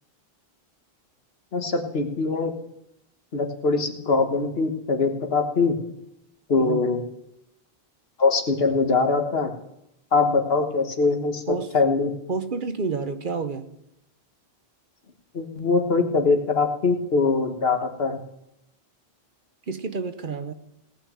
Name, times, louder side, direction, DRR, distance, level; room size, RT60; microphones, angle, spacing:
voice 1, 1.5-2.5 3.3-5.7 6.5-7.0 8.2-9.5 10.1-11.4 11.7-12.1 15.3-18.2, left 4 dB, 75° left, 4 dB, 1.6 m, -22 dB
voice 2, 12.3-13.7 19.7-20.5, right 4 dB, 55° right, 9 dB, 1.0 m, -29 dB
18.0 x 6.1 x 7.5 m, 0.83 s
omnidirectional pair, 1.0 m